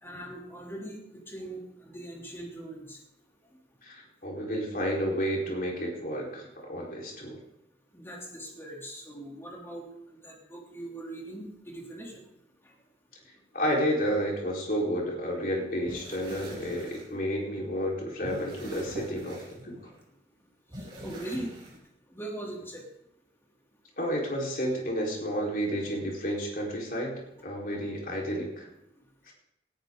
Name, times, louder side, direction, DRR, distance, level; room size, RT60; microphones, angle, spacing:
voice 1, 0.0-3.0 7.9-9.8 10.1-12.2 12.6-12.7 20.8-21.5 22.1-22.8, right 1 dB, 15° left, -1 dB, 3.3 m, -41 dB
voice 2, 3.8-7.4 13.5-19.7 24.0-27.1 27.4-28.7 29.3-29.4, equal, 50° left, -2 dB, 4.7 m, -31 dB
sound 1, 15.8-17.0 17.9-20.0 20.7-21.8, equal, 30° right, 7.4 m, -43 dB
19.0 x 14.0 x 4.0 m, 0.85 s
head